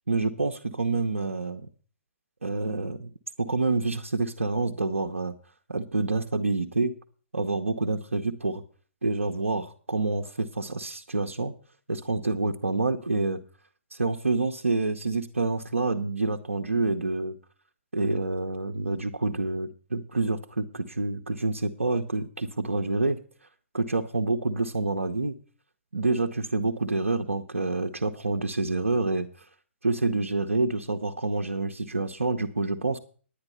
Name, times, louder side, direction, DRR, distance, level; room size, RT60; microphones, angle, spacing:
voice 1, 0.1-1.7 2.4-3.1 3.4-5.4 5.7-6.9 7.3-8.6 9.0-11.5 11.9-13.4 13.9-17.4 17.9-23.2 23.7-25.4 25.9-29.5 29.8-33.0, right 3 dB, 75° right, 3 dB, 0.8 m, -27 dB
10.0 x 9.7 x 5.4 m, 0.42 s
figure-of-eight pair, 125°, 7 cm